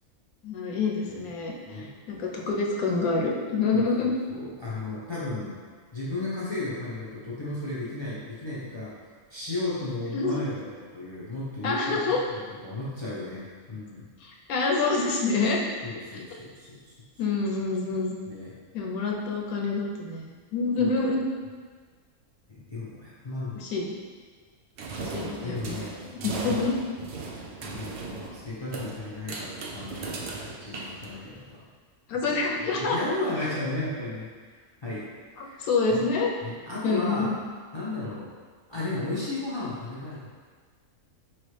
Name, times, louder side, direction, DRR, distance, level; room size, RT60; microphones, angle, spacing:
voice 1, 0.4-4.1 10.1-10.4 11.6-12.2 14.2-15.7 16.1-16.2 17.2-18.1 18.7-21.2 23.6-23.9 25.0-25.8 26.1-26.8 32.1-33.0 35.4-36.3 36.8-37.4, left 3 dB, 80° left, -1 dB, 1.1 m, -27 dB
voice 2, 3.7-5.6 5.9-8.9 9.3-12.0 12.3-14.1 15.8-16.9 18.3-18.5 20.8-20.9 22.5-23.6 25.1-26.5 27.6-31.6 32.2-35.1 35.4-36.0 36.4-37.4 37.7-38.3 38.7-40.3, left 2 dB, 35° left, -9 dB, 0.4 m, -35 dB
sound 1, 24.8-31.5, right 3 dB, 80° right, 0.5 m, -37 dB
4.4 x 3.0 x 3.2 m, 1.5 s
omnidirectional pair, 1.6 m